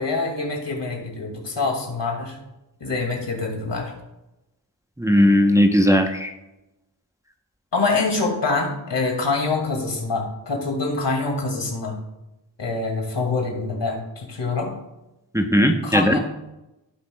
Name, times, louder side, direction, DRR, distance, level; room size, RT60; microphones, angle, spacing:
voice 1, 0.0-2.4 2.8-3.9 7.7-12.0 12.6-14.7 15.8-16.2, left 3 dB, 70° left, 1 dB, 2.3 m, -25 dB
voice 2, 5.0-6.3 15.3-16.2, equal, 5° right, 4 dB, 0.8 m, -17 dB
16.5 x 5.7 x 2.3 m, 0.94 s
cardioid pair, 45°, 45 cm